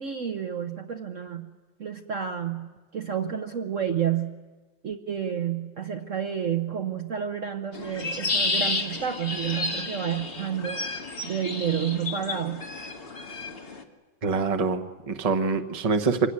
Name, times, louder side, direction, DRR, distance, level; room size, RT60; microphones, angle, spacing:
voice 1, 0.0-1.5 1.8-4.3 4.8-10.8 11.2-12.6, right 8 dB, 50° right, 6 dB, 1.1 m, -30 dB
sound 1, 7.7-13.8, left 3 dB, 30° left, 1.8 m, -31 dB
voice 2, 14.2-16.3, right 4 dB, 25° right, 7 dB, 1.0 m, -25 dB
25.5 x 17.0 x 9.8 m, 1.4 s
omnidirectional pair, 2.0 m